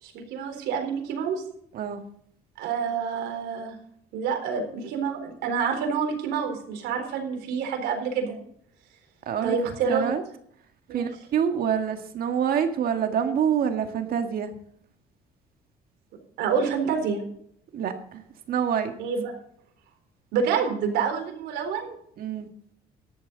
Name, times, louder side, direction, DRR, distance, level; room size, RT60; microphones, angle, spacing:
voice 1, 0.0-1.4 2.6-3.7 4.1-8.4 9.4-10.0 10.9-11.1 16.4-17.2 19.0-19.3 20.3-22.0, right 6 dB, 85° right, 3 dB, 4.1 m, -27 dB
voice 2, 9.2-9.5 9.8-10.2 10.9-14.5 17.7-18.2 18.5-18.9 22.2-22.5, right 8 dB, 60° right, 6 dB, 1.8 m, -26 dB
13.5 x 11.0 x 3.9 m, 0.67 s
cardioid pair, 110°, 17 cm